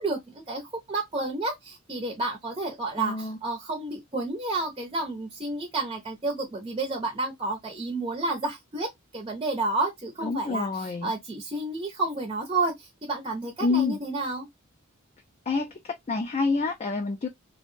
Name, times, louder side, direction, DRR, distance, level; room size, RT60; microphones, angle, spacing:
voice 1, 0.0-14.5, right 2 dB, 25° right, 0.6 m, -31 dB
voice 2, 3.0-3.4 10.2-11.1 13.6-14.0 15.5-17.3, left 4 dB, 30° left, 0.4 m, -27 dB
2.5 x 2.1 x 3.0 m
head